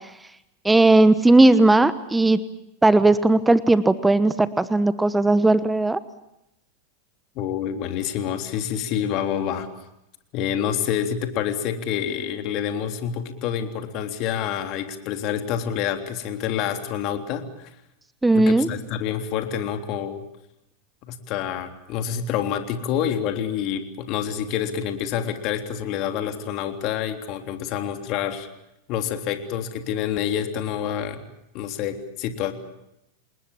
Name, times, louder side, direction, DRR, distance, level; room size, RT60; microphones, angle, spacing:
voice 1, 0.6-2.4 2.8-6.0 18.2-18.7, right 2 dB, 10° right, 14 dB, 1.1 m, -17 dB
voice 2, 7.3-9.7 10.3-17.7 18.3-20.2 21.0-28.5 28.9-31.2 31.5-32.5, left 9 dB, 50° left, 6 dB, 3.4 m, -27 dB
28.5 x 20.5 x 7.1 m, 0.86 s
hypercardioid pair, 95°, 0 cm